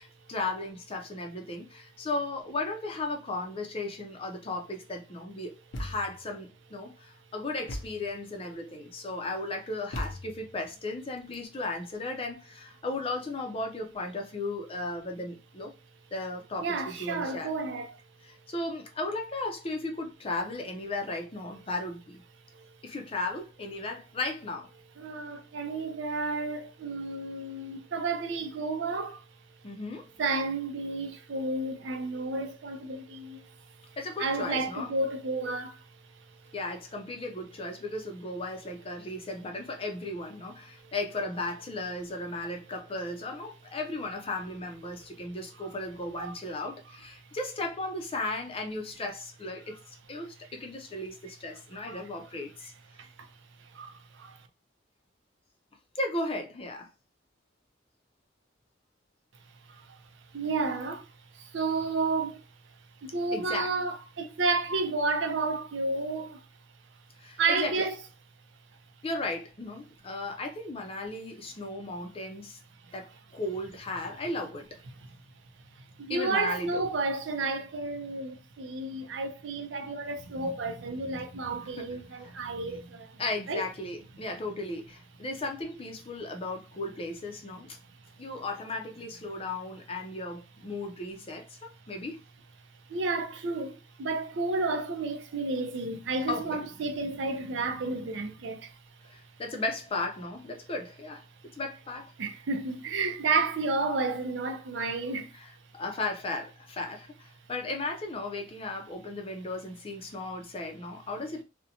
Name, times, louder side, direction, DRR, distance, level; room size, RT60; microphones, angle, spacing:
voice 1, 0.0-15.7 16.1-17.5 18.2-22.2 22.8-24.7 29.6-30.1 34.0-34.9 36.5-49.8 50.1-52.7 55.9-56.9 63.3-63.7 67.2-67.9 69.0-72.6 72.9-74.8 76.1-76.8 81.8-82.3 83.2-87.8 88.2-92.2 96.3-96.6 99.1-101.2 101.6-102.1 105.3-111.4, left 2 dB, 30° left, 0.5 m, -36 dB
Thump thud, 5.7-6.3 7.7-8.1 9.9-10.6, equal, 90° left, 0.6 m, -38 dB
voice 2, 16.6-17.9 22.6-22.7 25.0-29.2 30.2-33.5 34.2-35.8 46.2-46.4 51.8-52.0 53.0-53.1 53.7-54.4 59.7-59.8 60.3-61.1 61.4-62.4 63.0-66.4 67.4-67.9 76.0-83.2 83.5-83.6 92.9-98.7 102.2-105.3, right 3 dB, 70° right, 0.5 m, -31 dB
2.5 x 2.1 x 2.7 m
head